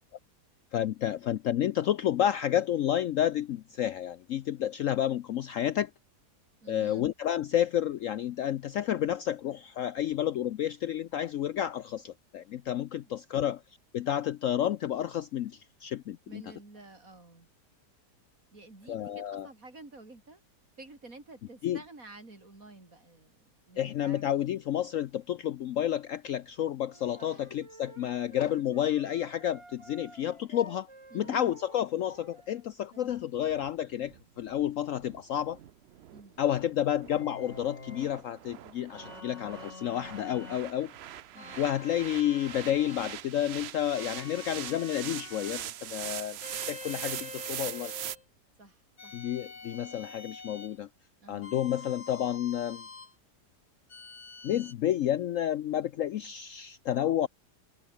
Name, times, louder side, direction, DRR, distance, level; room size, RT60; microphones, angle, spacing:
voice 1, 0.7-5.9 6.7-13.6 13.9-16.4 18.9-19.5 21.6-21.8 23.8-30.9 31.1-35.6 36.4-40.9 41.6-47.9 49.1-50.9 51.3-52.9 54.4-57.3, left 11 dB, 65° left, 0.8 m, -30 dB
voice 2, 6.6-7.1 13.0-13.5 16.2-17.5 18.5-20.4 20.8-24.3 27.2-27.4 31.1-31.5 32.9-33.2 36.1-36.4 41.3-41.6 48.6-49.2 51.2-51.6, right 2 dB, 55° right, 5.1 m, -51 dB
sound 1, 26.9-32.7, right 2 dB, 20° right, 1.7 m, -53 dB
sound 2, 33.1-48.2, right 11 dB, 75° right, 0.6 m, -42 dB
sound 3, 37.1-38.2 38.9-40.7 41.3-43.2 43.9-45.7 46.4-48.2 49.0-50.8 51.4-53.1 53.9-54.7, left 4 dB, 45° left, 2.9 m, -46 dB
omnidirectional pair, 1.8 m